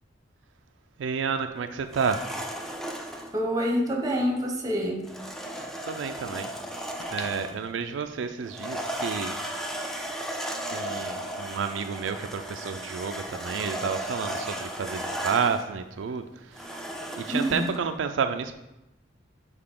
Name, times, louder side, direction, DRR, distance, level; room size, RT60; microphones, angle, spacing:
voice 1, 1.0-2.2 5.9-6.5 7.1-9.3 10.7-16.2 16.5-16.7 17.2-18.5, right 6 dB, 85° right, 7 dB, 0.4 m, -30 dB
sound 1, 1.9-3.3 5.0-7.6 8.5-15.7 16.5-17.8, right 1 dB, ahead, 0.5 m, -35 dB
voice 2, 3.3-5.1 17.3-17.7, equal, 20° right, 1 dB, 1.0 m, -27 dB
sound 2, 7.0-8.3 8.8-8.9, left 6 dB, 60° left, 0.5 m, -45 dB
6.7 x 4.3 x 3.7 m, 0.93 s
head